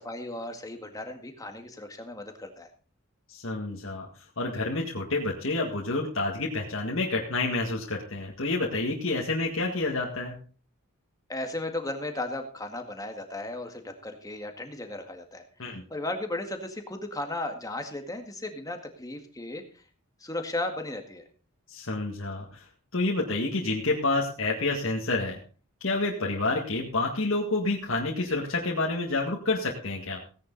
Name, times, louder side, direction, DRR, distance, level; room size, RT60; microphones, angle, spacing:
voice 1, 0.0-2.7 11.3-19.8 20.2-21.2, left 2 dB, 15° left, 5 dB, 1.8 m, -35 dB
voice 2, 3.3-4.1 4.4-10.4 15.6-15.8 21.7-22.7 22.9-25.4 25.8-30.2, left 2 dB, 60° left, -1 dB, 2.0 m, -28 dB
17.0 x 10.0 x 4.0 m, 0.38 s
head